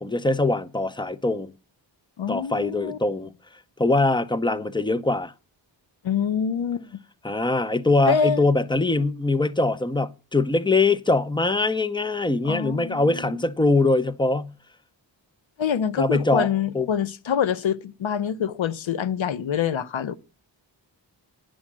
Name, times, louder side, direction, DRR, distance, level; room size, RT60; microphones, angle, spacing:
voice 1, 0.0-1.5 2.3-3.3 3.8-5.3 7.2-14.5 16.0-16.9, left 2 dB, 10° left, 0.5 m, -22 dB
voice 2, 2.2-3.0 6.0-7.0 8.1-8.4 12.4-13.4 15.6-20.1, left 7 dB, 85° left, 0.8 m, -26 dB
10.0 x 6.3 x 7.4 m
wide cardioid pair, 120°, 45 cm